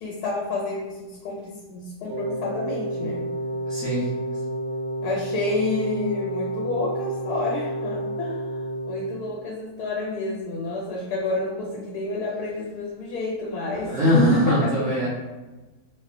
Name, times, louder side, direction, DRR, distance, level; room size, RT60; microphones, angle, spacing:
voice 1, 0.0-3.2 5.0-8.5 8.9-14.0 14.3-14.7, left 2 dB, 90° left, -3 dB, 1.2 m, -29 dB
Wind instrument woodwind instrument, 2.0-9.4, right 1 dB, 80° right, 1.3 m, -30 dB
voice 2, 3.7-4.0 13.8-15.1, equal, 60° right, -7 dB, 0.9 m, -20 dB
2.8 x 2.0 x 2.5 m, 1.2 s
omnidirectional pair, 1.7 m